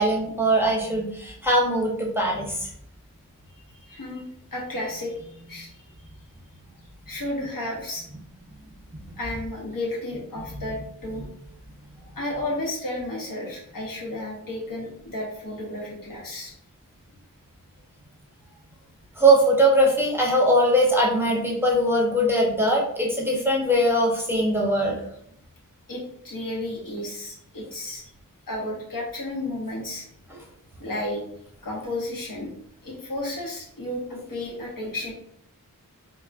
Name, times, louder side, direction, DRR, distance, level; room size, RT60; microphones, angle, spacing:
voice 1, 0.0-2.7 8.9-9.0 19.2-25.0, right 1 dB, 5° right, -3 dB, 0.7 m, -21 dB
voice 2, 3.9-5.8 7.1-8.0 9.2-11.3 12.2-16.5 25.9-28.0 28.5-30.1 30.8-31.2 31.6-32.5 32.8-35.1, left 1 dB, 70° left, -2 dB, 0.9 m, -32 dB
3.7 x 2.0 x 2.4 m, 0.71 s
wide cardioid pair, 50°, 34 cm